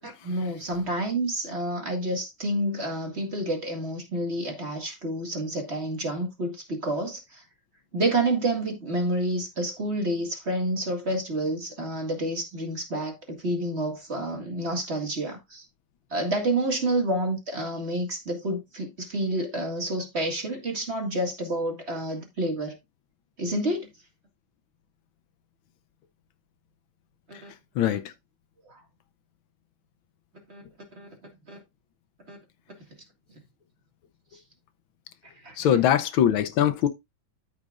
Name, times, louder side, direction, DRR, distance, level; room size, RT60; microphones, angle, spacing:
voice 1, 0.2-7.4 7.9-15.7 16.1-22.8 23.4-23.9 27.3-27.5 27.8-27.9 28.7-28.8 30.5-30.6 30.9-31.1 31.5-31.6 32.3-32.4 35.4-35.6, right 1 dB, 35° right, 2.2 m, -29 dB
voice 2, 27.7-28.1 35.6-36.9, left 10 dB, 80° left, 1.6 m, -23 dB
13.5 x 5.2 x 2.5 m
omnidirectional pair, 2.2 m